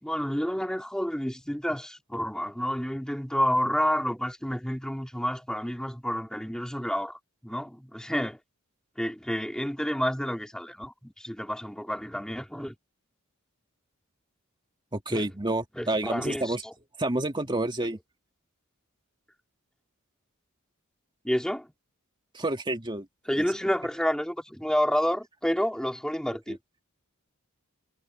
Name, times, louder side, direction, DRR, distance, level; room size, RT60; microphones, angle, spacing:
voice 1, 0.0-8.4 9.0-12.8 15.1-15.2 15.8-16.7 21.2-21.7 23.3-26.6, equal, 5° left, 3.0 m, -29 dB
voice 2, 14.9-16.6 17.0-18.0 22.3-23.1 26.5-26.6, right 2 dB, 20° right, 2.2 m, -29 dB
head